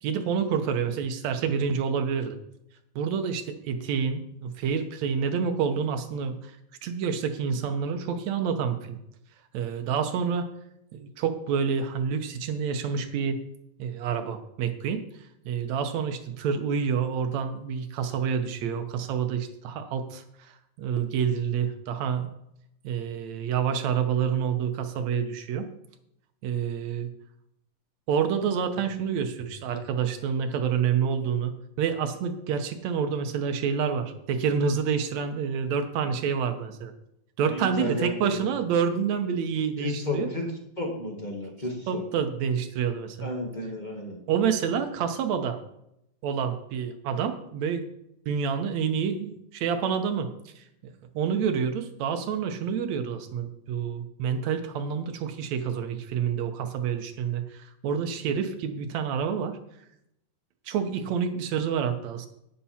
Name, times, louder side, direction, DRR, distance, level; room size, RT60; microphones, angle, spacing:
voice 1, 0.0-2.4 3.0-6.6 6.8-9.0 9.5-10.5 10.9-13.4 13.8-15.0 15.5-22.3 22.8-25.7 26.4-27.1 28.1-36.9 37.4-40.3 41.9-43.3 44.3-45.6 46.2-47.9 48.3-59.6 60.7-62.3, right 7 dB, 70° right, 8 dB, 1.9 m, -28 dB
voice 2, 37.4-38.5 39.8-40.4 40.8-42.0 43.2-44.2, left 2 dB, 25° left, 1 dB, 0.9 m, -32 dB
11.5 x 9.9 x 4.3 m, 0.78 s
omnidirectional pair, 3.9 m